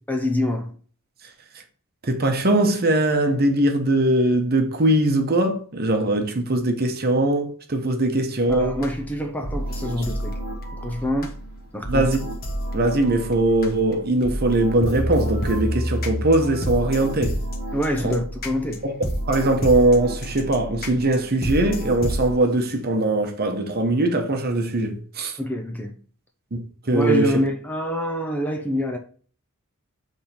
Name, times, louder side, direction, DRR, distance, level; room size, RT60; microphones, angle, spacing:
voice 1, 0.1-0.7 8.5-10.4 10.8-11.4 11.7-12.1 17.7-18.8 25.4-25.9 26.9-29.0, equal, 5° left, 0.7 m, -26 dB
voice 2, 2.0-8.8 11.9-12.2 12.7-17.4 18.0-18.1 18.8-18.9 19.3-25.3 26.5-27.3, right 1 dB, 45° right, 1.0 m, -21 dB
sound 1, 8.5-22.3, equal, 45° left, 1.3 m, -29 dB
7.1 x 3.6 x 4.3 m
head